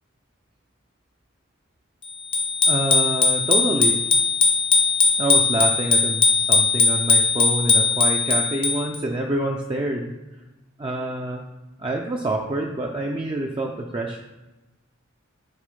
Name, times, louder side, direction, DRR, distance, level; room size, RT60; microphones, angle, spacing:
Bicycle bell, 2.3-9.0, left 4 dB, 25° left, 0.6 m, -19 dB
voice 1, 2.7-4.0 5.2-10.1 10.8-11.4 11.8-14.2, right 2 dB, 25° right, 0 dB, 0.4 m, -26 dB
6.5 x 3.6 x 5.3 m, 1.1 s
head